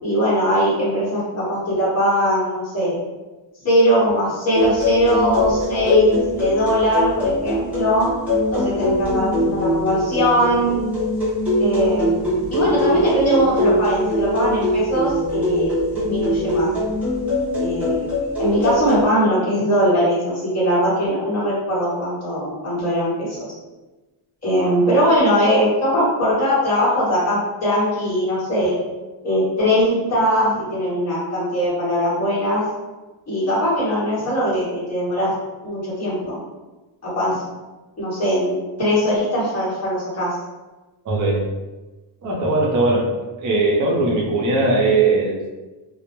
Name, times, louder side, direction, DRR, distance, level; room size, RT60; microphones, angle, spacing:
voice 1, 0.0-3.0 3.6-8.1 8.5-10.8 11.6-12.2 12.5-16.7 17.6-18.0 18.4-23.5 24.4-28.8 29.2-32.6 33.3-35.3 35.6-36.4 37.0-37.4 38.0-40.4, equal, 35° left, -8 dB, 1.0 m, -20 dB
sound 1, 4.5-19.0, left 1 dB, 5° right, 0.9 m, -22 dB
voice 2, 41.0-41.5 42.2-43.1 43.4-45.5, right 2 dB, 40° right, -3 dB, 0.5 m, -19 dB
2.1 x 2.0 x 2.9 m, 1.2 s
wide cardioid pair, 130°, 47 cm